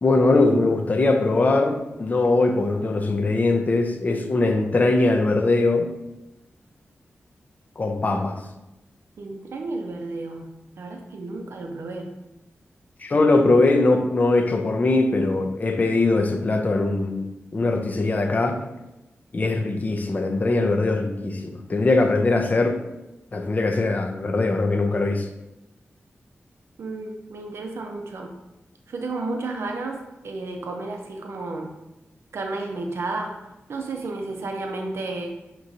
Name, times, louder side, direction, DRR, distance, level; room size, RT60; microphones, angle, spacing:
voice 1, 0.0-5.9 7.8-8.4 13.0-18.7 19.3-22.8 23.3-25.3, left 2 dB, 40° left, 0.5 m, -21 dB
voice 2, 9.2-10.5 10.8-12.1 26.8-28.3 28.9-30.0 30.2-31.7 32.3-33.3 33.7-35.3, right 2 dB, 80° right, 0.5 m, -32 dB
6.0 x 3.0 x 2.6 m
wide cardioid pair, 115°, 4 cm